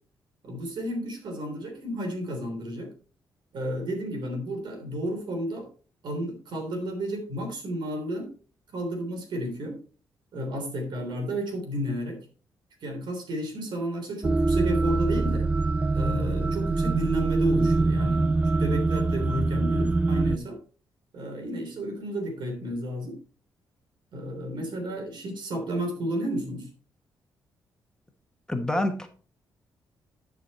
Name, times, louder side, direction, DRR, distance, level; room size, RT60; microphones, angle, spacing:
voice 1, 0.4-2.9 3.5-5.7 6.0-8.3 8.7-9.8 10.3-12.2 12.8-15.5 15.9-18.3 18.6-20.6 21.1-23.2 24.1-26.7, equal, 70° right, 3 dB, 3.3 m, -32 dB
sound 1, 14.2-20.4, right 3 dB, 20° right, 0.4 m, -24 dB
voice 2, 28.5-29.1, left 1 dB, 10° left, 5 dB, 1.4 m, -26 dB
11.0 x 5.3 x 4.2 m, 0.39 s
cardioid pair, 85°, 8 cm